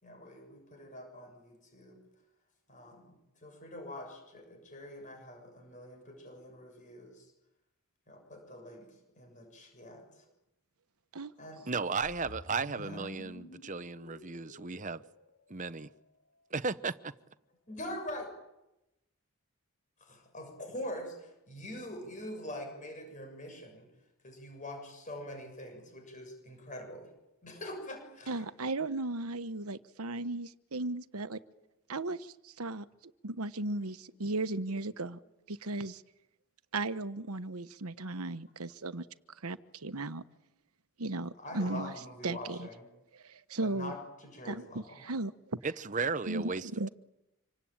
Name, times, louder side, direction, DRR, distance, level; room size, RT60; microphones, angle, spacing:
voice 1, 0.0-2.0 2.7-7.3 8.1-8.9 9.2-10.2 11.4-11.7 12.8-13.1 17.7-18.3 20.0-23.9 24.2-27.1 27.4-28.4 41.4-42.9 43.6-45.0, left 1 dB, 35° left, 6.9 m, -44 dB
voice 2, 11.7-15.0 15.5-15.9 16.5-17.1 45.6-46.9, right 4 dB, 35° right, 0.9 m, -35 dB
sound 1, 12.0-16.2, left 1 dB, 70° left, 1.6 m, -51 dB
voice 3, 28.3-31.4 31.9-32.8 33.2-35.2 35.5-36.0 36.7-39.0 39.4-40.2 41.0-42.7 43.1-44.0 44.5-45.6 46.3-46.9, right 2 dB, 80° right, 1.2 m, -36 dB
26.5 x 24.5 x 9.0 m
head